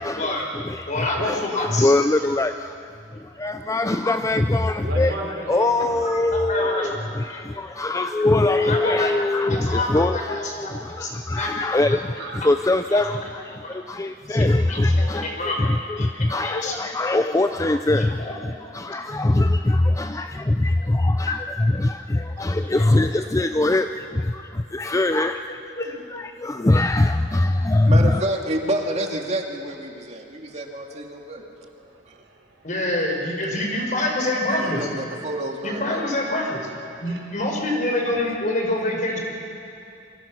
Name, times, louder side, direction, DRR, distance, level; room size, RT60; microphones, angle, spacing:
voice 1, 0.0-2.7 3.1-5.2 5.5-28.2, left 2 dB, 15° left, 8 dB, 0.5 m, -22 dB
voice 2, 0.9-1.9 6.0-7.0 8.1-8.3 8.6-10.7 11.0-11.5 11.9-12.0 12.9-13.3 13.6-13.7 14.3-15.6 16.0-16.8 17.2-17.3 18.0-18.3 21.3-21.4 22.7-22.8 25.8-25.9 32.6-34.9 35.6-36.7 37.0-39.2, left 2 dB, 45° left, 1 dB, 4.9 m, -27 dB
voice 3, 4.8-6.0 12.2-12.4 14.2-14.3 15.0-15.3 16.0-16.5 18.9-19.3 19.8-19.9 21.9-22.6 30.5-30.6 31.1-31.3 31.6-32.7 36.9-37.2, right 1 dB, 75° right, 0 dB, 4.8 m, -38 dB
voice 4, 27.8-31.5 32.1-32.2 34.5-36.1, right 1 dB, 40° right, 2 dB, 2.2 m, -29 dB
28.5 x 24.0 x 6.2 m, 2.6 s
head